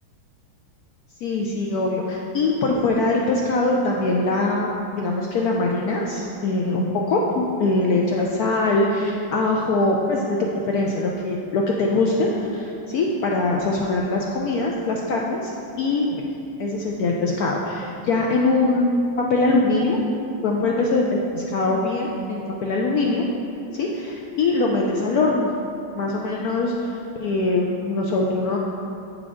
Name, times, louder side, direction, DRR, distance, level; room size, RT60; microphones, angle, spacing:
voice 1, 1.2-15.5 15.8-16.2 16.6-20.0 20.4-21.0 21.3-23.2 23.7-25.5 25.9-28.6, left 2 dB, 75° left, -2 dB, 0.8 m, -22 dB
8.3 x 5.0 x 3.7 m, 2.8 s
omnidirectional pair, 2.1 m